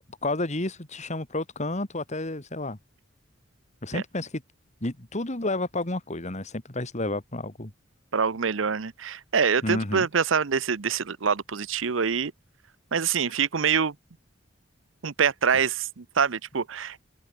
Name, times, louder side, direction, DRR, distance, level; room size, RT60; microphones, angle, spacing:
voice 1, 0.2-2.8 3.8-4.4 4.8-7.7 9.6-10.1, left 2 dB, 35° left, 2.3 m, -30 dB
voice 2, 8.1-12.3 12.9-14.0 15.0-17.0, right 6 dB, 75° right, 0.8 m, -25 dB
head